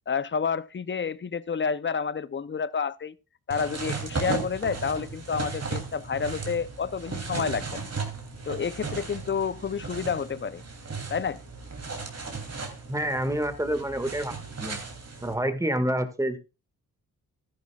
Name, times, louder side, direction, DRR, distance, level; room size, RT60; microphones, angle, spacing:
voice 1, 0.1-3.1 3.5-7.9 8.5-10.6 11.1-11.4, left 6 dB, 35° left, 0.6 m, -29 dB
sound 1, 3.5-15.3, right 4 dB, 45° right, 2.9 m, -36 dB
voice 2, 12.9-14.3 14.6-14.8 15.2-16.4, right 1 dB, 10° right, 1.8 m, -27 dB
13.5 x 10.5 x 2.4 m
cardioid pair, 70°, 35 cm